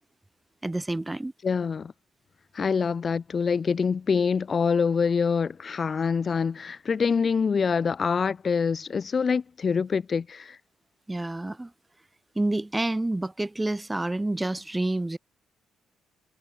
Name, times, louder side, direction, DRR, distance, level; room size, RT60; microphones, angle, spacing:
voice 1, 0.6-1.3 11.1-11.7 12.3-15.2, right 2 dB, 15° right, 1.6 m, -28 dB
voice 2, 1.4-1.9 2.5-10.6, left 5 dB, 40° left, 2.1 m, -25 dB
cardioid pair, 90°, 0 cm